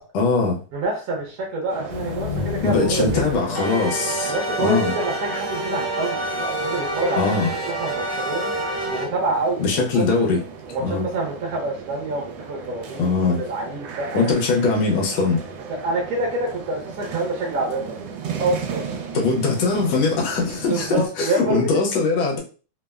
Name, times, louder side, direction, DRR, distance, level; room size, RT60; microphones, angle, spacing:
voice 1, 0.1-0.6 2.3-4.9 7.2-7.5 9.6-10.4 10.8-11.0 13.0-13.4 14.1-15.4 19.1-22.4, left 4 dB, 80° left, -1 dB, 1.4 m, -21 dB
voice 2, 0.7-3.4 4.3-7.3 7.7-8.5 8.9-10.0 10.7-14.3 15.7-18.1 18.4-19.0 20.7-21.8, right 2 dB, 60° right, -2 dB, 1.0 m, -27 dB
sound 1, 1.7-21.1, right 6 dB, 80° right, 1.3 m, -36 dB
sound 2, 1.9-9.1, equal, 40° left, 0.9 m, -28 dB
3.4 x 2.0 x 2.3 m, 0.37 s
omnidirectional pair, 2.1 m